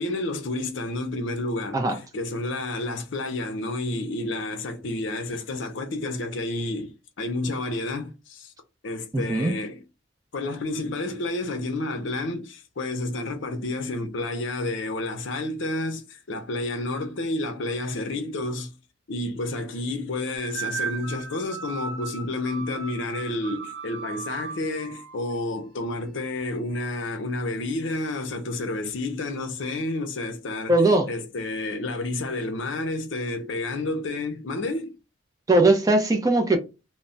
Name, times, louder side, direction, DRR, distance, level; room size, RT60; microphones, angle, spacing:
voice 1, 0.0-1.8 2.1-8.5 8.8-9.8 10.3-18.7 19.1-30.7 31.1-34.9, left 2 dB, 70° left, 0.6 m, -30 dB
voice 2, 9.1-9.6 30.7-31.1 35.5-36.6, right 2 dB, 15° right, 0.4 m, -20 dB
sound 1, 20.4-25.4, right 6 dB, 70° right, 0.8 m, -36 dB
2.2 x 2.1 x 3.7 m
head